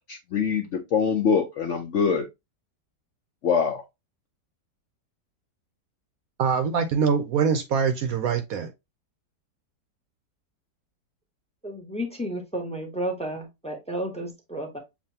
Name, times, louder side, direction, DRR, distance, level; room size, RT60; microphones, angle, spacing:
voice 1, 0.1-2.2 3.4-3.8, left 6 dB, 65° left, 0.8 m, -24 dB
voice 2, 6.4-8.7, right 6 dB, 70° right, 0.9 m, -24 dB
voice 3, 11.6-14.8, right 1 dB, 5° left, 0.6 m, -32 dB
7.2 x 2.6 x 2.7 m
omnidirectional pair, 1.9 m